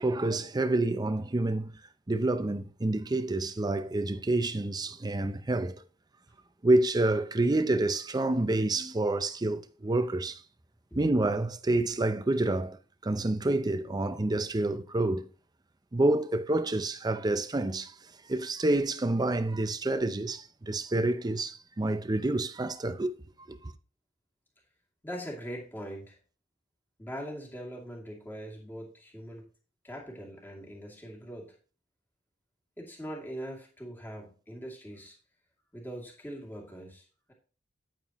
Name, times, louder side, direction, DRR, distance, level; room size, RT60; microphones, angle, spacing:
voice 1, 0.0-1.7 2.1-5.8 6.6-10.4 11.0-15.3 15.9-17.9 18.3-23.1 23.5-23.7, right 2 dB, 20° right, 0.5 m, -28 dB
voice 2, 25.0-26.2 27.0-29.4 29.8-31.5 32.8-35.2 35.7-37.3, equal, 10° left, 2.6 m, -42 dB
9.1 x 9.0 x 3.0 m
head